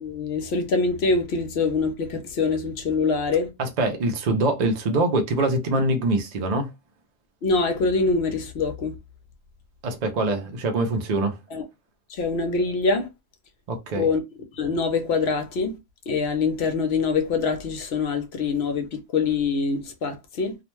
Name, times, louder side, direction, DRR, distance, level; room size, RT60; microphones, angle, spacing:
voice 1, 0.0-3.5 7.4-9.0 11.5-11.6 12.1-13.1 14.0-14.2 14.5-15.8 16.1-20.6, left 4 dB, 60° left, 0.8 m, -24 dB
voice 2, 3.6-6.7 9.8-11.4 13.7-14.1, right 2 dB, 65° right, 0.4 m, -24 dB
2.4 x 2.1 x 3.0 m
omnidirectional pair, 1.3 m